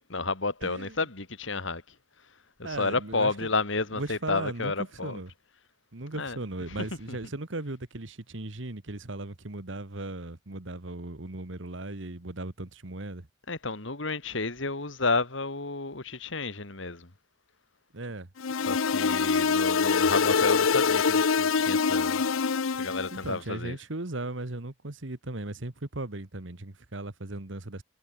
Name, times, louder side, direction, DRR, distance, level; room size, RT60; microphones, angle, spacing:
voice 1, 0.1-1.8 2.6-5.2 6.1-6.4 6.7-7.2 13.5-17.1 18.7-22.2 22.8-23.8, left 3 dB, 70° left, 2.4 m, -31 dB
voice 2, 0.6-1.0 2.6-3.5 3.9-4.7 5.0-5.3 5.9-13.3 17.9-18.3 23.1-27.8, right 2 dB, 70° right, 1.6 m, -37 dB
sound 1, 18.4-23.2, left 5 dB, 90° left, 0.7 m, -24 dB
head